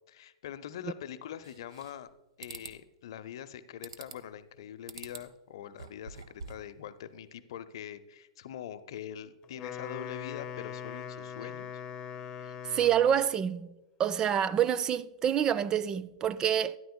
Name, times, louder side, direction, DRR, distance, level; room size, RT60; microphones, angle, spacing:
voice 1, 0.1-2.1 2.4-11.7, left 10 dB, 60° left, 0.6 m, -43 dB
sound 1, 1.4-2.1 2.4-2.8 3.8-4.3 4.9-5.3 5.7-6.7, right 5 dB, 75° right, 0.9 m, -46 dB
Wind instrument woodwind instrument, 9.4-13.3, left 8 dB, 25° left, 0.9 m, -41 dB
voice 2, 12.7-13.7 14.0-16.8, right 9 dB, 25° right, 0.3 m, -27 dB
13.0 x 10.5 x 2.2 m
hypercardioid pair, 115°, 3 cm